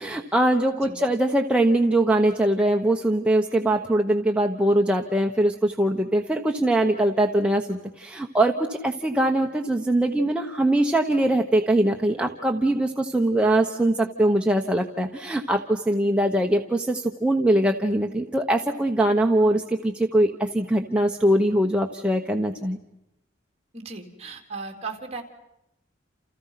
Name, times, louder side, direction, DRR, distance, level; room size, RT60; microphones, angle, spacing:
voice 1, 0.0-22.8, right 1 dB, 5° right, 2 dB, 1.2 m, -22 dB
voice 2, 23.7-25.2, right 4 dB, 35° right, 3 dB, 3.8 m, -36 dB
29.5 x 29.5 x 5.9 m, 0.89 s
head